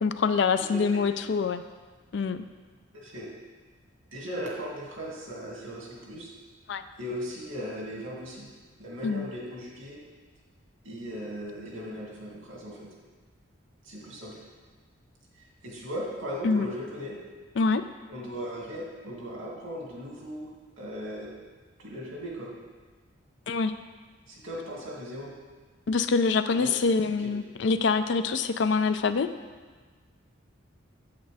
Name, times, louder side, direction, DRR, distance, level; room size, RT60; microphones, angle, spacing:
voice 1, 0.0-1.6 2.1-2.4 6.7-6.8 9.0-9.3 16.4-16.7 17.6-17.8 23.5-23.7 25.9-29.3, left 4 dB, 60° left, 11 dB, 0.4 m, -25 dB
voice 2, 0.6-1.1 2.9-3.3 4.1-6.3 7.0-8.5 8.8-10.0 10.8-12.9 13.8-14.3 15.6-17.2 18.1-20.5 20.8-21.3 21.8-22.5 24.3-25.3 26.5-26.8 27.2-27.3, equal, 80° right, -4 dB, 2.3 m, -37 dB
8.8 x 7.9 x 3.4 m, 1.4 s
head